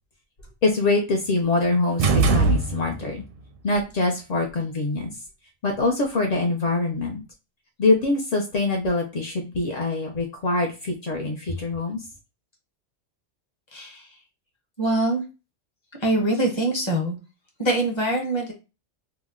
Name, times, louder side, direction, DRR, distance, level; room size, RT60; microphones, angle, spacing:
voice 1, 0.6-3.2 3.6-5.1 5.6-7.2 7.8-12.0, left 3 dB, 60° left, 0 dB, 0.4 m, -24 dB
sound 1, 2.0-3.2, right 4 dB, 60° right, 0.6 m, -21 dB
voice 2, 13.7-14.1 14.8-15.2 16.0-17.2 17.6-18.5, right 1 dB, 25° left, 0 dB, 0.8 m, -23 dB
2.8 x 2.0 x 3.5 m, 0.29 s
omnidirectional pair, 1.3 m